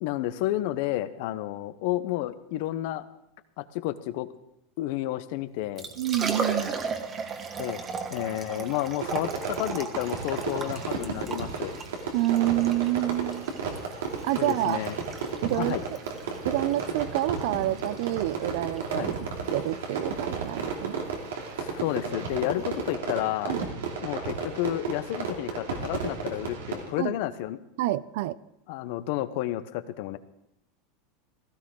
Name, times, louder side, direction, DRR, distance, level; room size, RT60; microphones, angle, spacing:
voice 1, 0.0-3.1 3.6-4.3 4.8-5.9 7.6-7.8 8.1-11.7 14.4-14.9 15.6-15.8 18.9-19.1 21.6-23.6 24.0-27.6 28.7-30.2, left 14 dB, 65° left, 13 dB, 0.8 m, -31 dB
Liquid, 5.6-22.9, right 4 dB, 30° right, 1.5 m, -38 dB
voice 2, 6.0-6.8 12.1-13.5 14.2-14.8 15.4-15.7 16.5-19.3 19.5-21.0 23.5-23.7 27.0-27.2 27.8-28.3, right 15 dB, 70° right, 18 dB, 0.5 m, -28 dB
Fireworks, 9.0-26.9, right 5 dB, 90° right, 2.8 m, -33 dB
16.0 x 13.5 x 3.8 m, 0.85 s
supercardioid pair, 115°, 0 cm